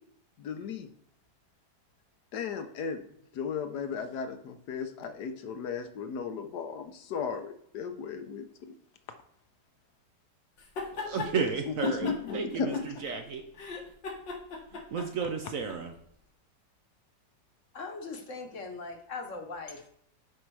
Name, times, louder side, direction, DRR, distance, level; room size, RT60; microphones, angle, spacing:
voice 1, 0.4-0.9 2.3-3.0 3.3-8.7 11.7-12.8, left 6 dB, 70° left, 8 dB, 1.3 m, -35 dB
sound 1, 10.6-11.3 11.8-13.2 13.5-15.8, left 3 dB, 85° left, 2.3 m, -38 dB
voice 2, 10.9-12.8 13.0-13.4 14.7-15.9, right 5 dB, 60° right, 5 dB, 1.0 m, -32 dB
voice 3, 17.7-19.9, left 3 dB, 50° left, 4 dB, 1.4 m, -40 dB
7.7 x 5.5 x 4.7 m, 0.70 s
omnidirectional pair, 1.9 m